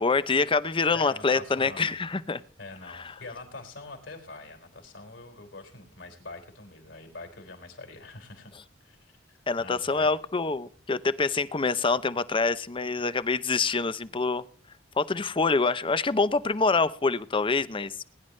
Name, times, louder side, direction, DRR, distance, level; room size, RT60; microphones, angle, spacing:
voice 1, 0.0-2.4 2.9-3.0 9.5-14.4 15.0-17.9, left 4 dB, 25° left, 16 dB, 0.6 m, -26 dB
voice 2, 0.9-2.0 2.6-8.5 8.8-10.1, left 3 dB, 70° left, 4 dB, 4.2 m, -44 dB
21.5 x 10.5 x 3.2 m, 0.42 s
head